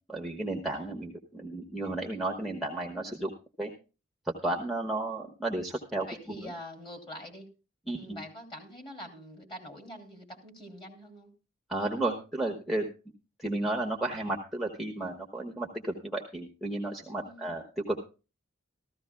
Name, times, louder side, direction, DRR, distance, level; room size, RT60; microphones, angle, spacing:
voice 1, 0.1-3.3 3.6-3.7 4.2-6.1 6.4-6.5 7.9-8.2 11.7-12.9 13.4-18.0, right 2 dB, ahead, 0 dB, 1.1 m, -33 dB
voice 2, 6.1-7.5 7.9-11.3 17.2-17.6, equal, 25° left, 3 dB, 2.8 m, -45 dB
14.5 x 14.5 x 2.3 m, 0.32 s
head